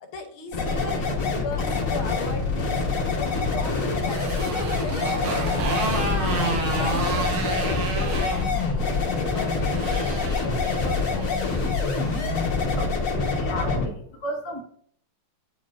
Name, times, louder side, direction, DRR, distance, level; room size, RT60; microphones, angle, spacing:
voice 1, 0.0-2.9 3.1-5.7 6.1-10.5 10.8-11.8, left 4 dB, 75° left, 6 dB, 1.6 m, -38 dB
sound 1, 0.5-13.9, left 4 dB, 45° left, 1.3 m, -25 dB
Motorcycle, 2.9-12.4, right 3 dB, 75° right, 1.6 m, -32 dB
voice 2, 12.6-14.6, right 1 dB, 25° left, -1 dB, 0.6 m, -34 dB
9.3 x 4.5 x 2.5 m, 0.63 s
omnidirectional pair, 2.4 m